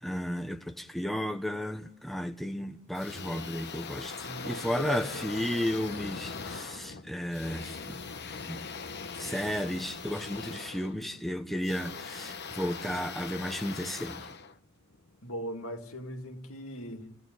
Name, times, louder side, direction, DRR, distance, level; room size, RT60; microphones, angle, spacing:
voice 1, 0.0-8.0 8.5-8.7 9.1-14.3, equal, ahead, 0.9 m, -33 dB
sound 1, 2.9-15.2, left 5 dB, 50° left, 1.0 m, -41 dB
voice 2, 4.2-5.4 15.2-17.1, left 1 dB, 70° left, 2.3 m, -39 dB
28.5 x 17.5 x 9.4 m
head